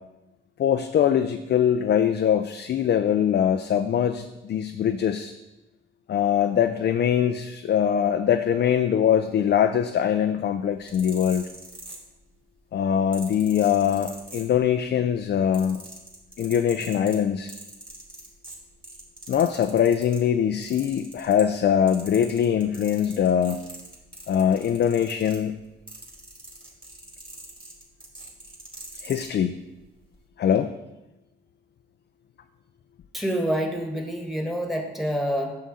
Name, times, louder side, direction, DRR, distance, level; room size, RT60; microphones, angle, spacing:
voice 1, 0.6-5.3 6.1-11.5 12.7-15.8 16.4-17.5 19.3-23.6 24.3-25.6 29.0-29.6 30.4-30.7, left 9 dB, 55° left, 7 dB, 0.4 m, -22 dB
sound 1, 10.7-12.4 13.1-14.9 15.2-20.2 20.6-21.6 21.9-29.3 30.0-30.2, right 1 dB, 25° right, 2.5 m, -43 dB
voice 2, 33.1-35.5, equal, ahead, 2 dB, 1.7 m, -27 dB
7.6 x 6.2 x 4.2 m, 1.0 s
cardioid pair, 70°, 21 cm